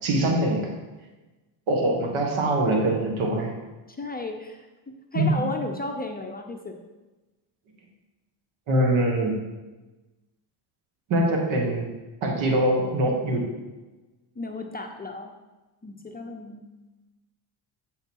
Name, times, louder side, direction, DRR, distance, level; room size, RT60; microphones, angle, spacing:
voice 1, 0.0-0.7 1.7-3.5 5.1-5.3 8.7-9.3 11.1-11.9 12.2-13.4, right 1 dB, 70° right, 0 dB, 1.5 m, -23 dB
voice 2, 3.9-6.8 14.4-15.3 15.8-16.6, left 2 dB, 20° left, 3 dB, 0.6 m, -34 dB
8.0 x 4.0 x 4.5 m, 1.1 s
supercardioid pair, 80°, 50 cm